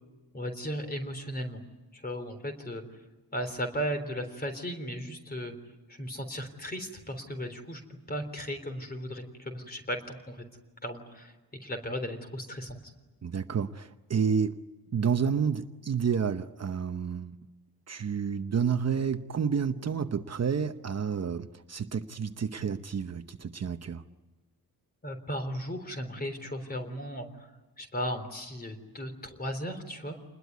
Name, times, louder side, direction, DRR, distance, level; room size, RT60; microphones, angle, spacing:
voice 1, 0.3-1.6 1.9-3.0 3.3-5.5 5.9-7.8 8.1-10.4 10.8-11.3 11.6-12.9 25.0-27.5 27.8-30.2, equal, 25° left, 6 dB, 3.6 m, -36 dB
voice 2, 13.2-14.6 14.9-17.4 17.9-24.0, right 6 dB, 45° right, 8 dB, 0.9 m, -30 dB
28.5 x 21.0 x 9.5 m, 1.2 s
wide cardioid pair, 170°, 37 cm